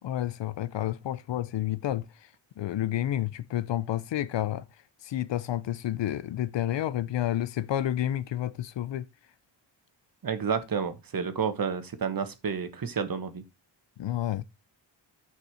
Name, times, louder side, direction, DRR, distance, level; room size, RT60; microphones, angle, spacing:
voice 1, 0.0-2.1 2.6-4.6 5.0-9.1 14.0-14.4, left 12 dB, 70° left, 0.7 m, -30 dB
voice 2, 10.2-13.4, right 6 dB, 50° right, 1.5 m, -30 dB
9.2 x 5.4 x 4.9 m
cardioid pair, 95°, 46 cm